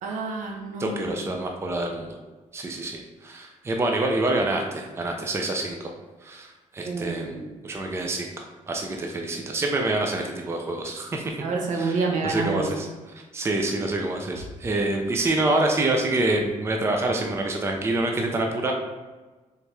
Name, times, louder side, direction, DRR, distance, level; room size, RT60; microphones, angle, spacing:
voice 1, 0.0-1.1 6.8-7.5 11.4-12.7, right 4 dB, 75° right, 1 dB, 0.9 m, -28 dB
voice 2, 0.8-2.2 2.5-5.9 6.2-7.3 7.6-11.2 11.7-12.9 13.3-18.7, right 2 dB, 20° right, 2 dB, 0.5 m, -26 dB
4.5 x 3.4 x 3.2 m, 1.2 s
cardioid pair, 140°, 13 cm